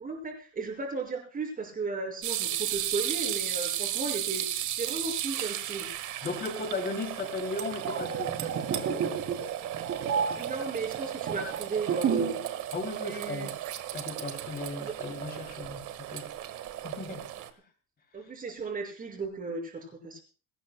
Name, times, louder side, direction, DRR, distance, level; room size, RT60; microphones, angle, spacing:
voice 1, 0.0-5.9 10.4-12.4 13.0-13.5 14.8-14.9 18.1-20.2, right 3 dB, 25° right, 2 dB, 5.7 m, -35 dB
sound 1, 2.2-17.5, right 12 dB, 55° right, 1.6 m, -35 dB
voice 2, 6.2-8.9 12.7-13.5 13.9-16.3 16.8-17.2, left 3 dB, 25° left, 5 dB, 3.0 m, -36 dB
sound 2, 7.7-12.5 12.7-13.0, right 6 dB, 40° right, 2.8 m, -31 dB
21.5 x 19.0 x 2.2 m, 0.37 s
cardioid pair, 155°, 35 cm